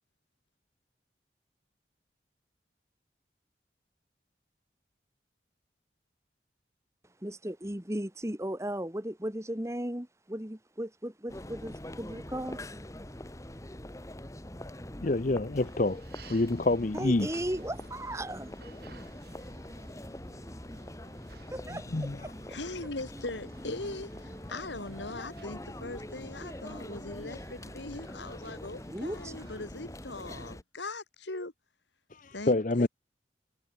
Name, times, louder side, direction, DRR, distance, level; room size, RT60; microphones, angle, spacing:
voice 1, 7.2-12.6 16.9-18.5 21.5-22.1 28.9-29.4, right 1 dB, 15° right, 1.6 m, -36 dB
sound 1, 11.3-30.6, left 1 dB, 15° left, 1.4 m, -44 dB
voice 2, 15.0-17.3 21.7-22.2 32.1-32.9, left 2 dB, 45° left, 0.7 m, -28 dB
sound 2, 15.5-29.6, right 3 dB, 60° right, 2.5 m, -56 dB
voice 3, 22.5-31.5 32.3-32.9, left 2 dB, 85° left, 2.4 m, -40 dB
head